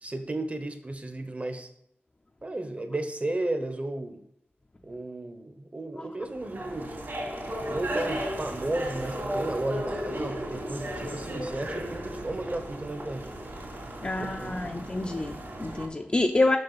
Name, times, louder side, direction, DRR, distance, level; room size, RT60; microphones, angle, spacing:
voice 1, 0.0-1.7 2.4-4.2 4.8-7.0 7.7-13.4 14.0-14.7, right 2 dB, 35° right, 0.9 m, -34 dB
sound 1, 6.3-15.9, equal, 65° right, 2.6 m, -35 dB
voice 2, 14.0-16.6, left 2 dB, 30° left, 0.5 m, -27 dB
6.5 x 6.3 x 4.1 m
wide cardioid pair, 100°, 4 cm